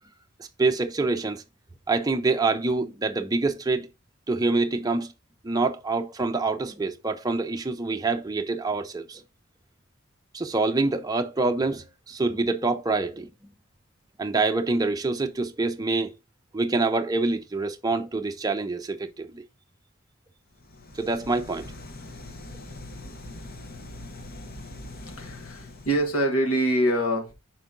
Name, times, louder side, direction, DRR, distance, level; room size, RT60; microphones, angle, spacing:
voice 1, 0.6-1.4 1.9-3.9 4.3-5.1 5.4-9.2 10.3-13.3 14.2-16.1 16.5-19.4 21.0-21.7, right 3 dB, 15° right, 0.5 m, -26 dB
sound 1, 20.5-26.3, left 2 dB, 45° left, 0.8 m, -42 dB
voice 2, 25.0-27.3, right 1 dB, 85° left, 1.8 m, -25 dB
5.7 x 4.5 x 3.7 m
head